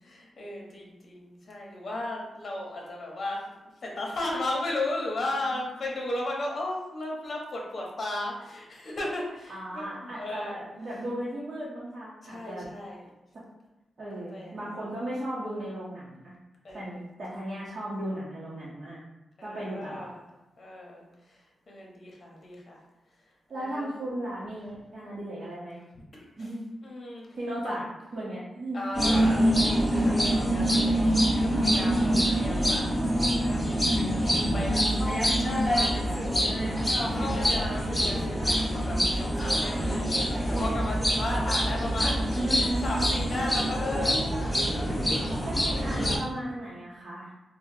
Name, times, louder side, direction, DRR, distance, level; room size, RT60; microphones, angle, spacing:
voice 1, 0.0-3.4 3.8-10.6 12.2-13.0 14.3-14.8 16.6-17.0 19.4-20.2 20.6-21.4 21.7-22.8 23.5-24.0 26.1-26.5 26.8-27.3 27.6-27.7 28.7-34.2 34.5-40.1 40.5-42.2 42.5-44.4, left 1 dB, 50° left, -2 dB, 0.8 m, -35 dB
voice 2, 9.5-12.7 14.0-16.3 16.7-19.0 19.4-20.1 23.5-25.8 26.4-26.6 27.3-27.8 28.1-28.9 45.3-47.3, right 1 dB, 60° right, -8 dB, 0.8 m, -36 dB
sound 1, 28.9-46.2, equal, 10° left, 1.0 m, -25 dB
3.5 x 2.1 x 2.7 m, 1.0 s
cardioid pair, 85°, 0 cm